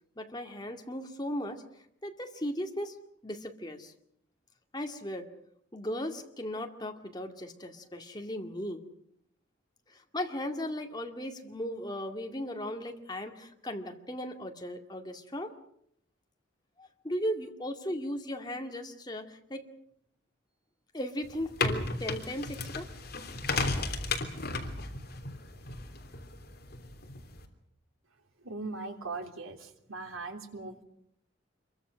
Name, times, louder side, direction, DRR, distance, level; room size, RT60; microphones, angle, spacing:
voice 1, 0.2-1.6 2.0-3.0 3.2-3.9 4.7-5.3 5.7-8.8 9.9-15.5 16.8-19.7 20.9-22.9, equal, 20° left, 4 dB, 2.2 m, -37 dB
sound 1, 21.2-27.5, left 3 dB, 50° left, 3.2 m, -35 dB
voice 2, 28.4-30.8, right 3 dB, 85° right, 4 dB, 3.3 m, -40 dB
27.0 x 23.0 x 6.4 m, 0.71 s
head